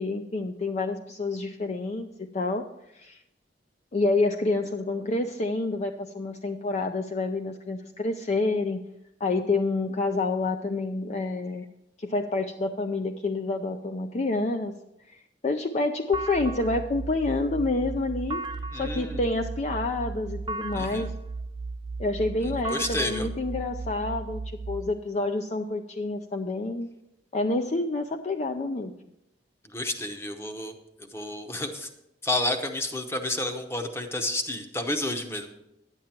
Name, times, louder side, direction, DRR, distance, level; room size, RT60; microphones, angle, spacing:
voice 1, 0.0-2.7 2.9-3.2 3.9-8.9 9.2-11.7 12.0-14.8 15.1-18.4 18.7-21.2 22.0-26.9 27.3-29.0, left 2 dB, 40° left, 5 dB, 0.4 m, -28 dB
sound 1, 16.1-24.8, right 3 dB, 25° right, 0.4 m, -35 dB
voice 2, 18.7-19.2 20.7-21.1 22.7-23.3 29.7-30.7 31.1-31.9 32.2-35.6, left 1 dB, 15° left, 6 dB, 0.9 m, -30 dB
11.0 x 8.9 x 4.4 m, 0.86 s
head